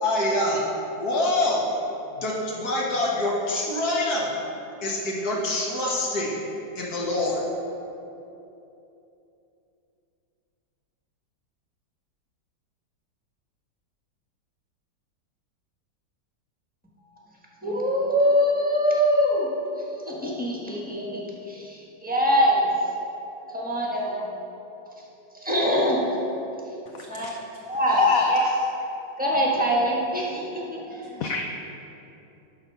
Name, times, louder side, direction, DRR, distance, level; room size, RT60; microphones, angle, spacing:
voice 1, 0.0-0.6 1.0-1.7 2.1-4.3 4.8-6.4 6.7-7.4, left 1 dB, 60° left, -3 dB, 1.7 m, -25 dB
voice 2, 17.6-19.5 19.8-23.0 23.4-24.3 25.3-26.2 27.1-27.3 27.7-28.4 29.2-31.2, equal, 5° right, -4 dB, 1.1 m, -24 dB
voice 3, 28.0-28.4 31.2-31.4, left 6 dB, 80° left, 3 dB, 0.7 m, -22 dB
11.5 x 4.1 x 5.5 m, 2.8 s
omnidirectional pair, 2.0 m